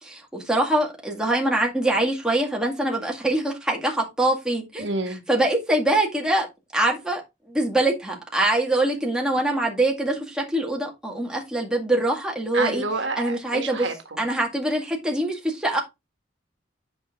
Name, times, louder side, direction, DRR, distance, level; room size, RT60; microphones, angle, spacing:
voice 1, 0.0-4.9 5.3-6.5 6.7-7.2 7.5-12.8 13.2-13.9 14.2-15.8, right 1 dB, 5° right, 2.0 m, -24 dB
voice 2, 4.8-5.2 12.5-14.2, right 3 dB, 70° right, 1.6 m, -29 dB
8.0 x 6.3 x 3.6 m
head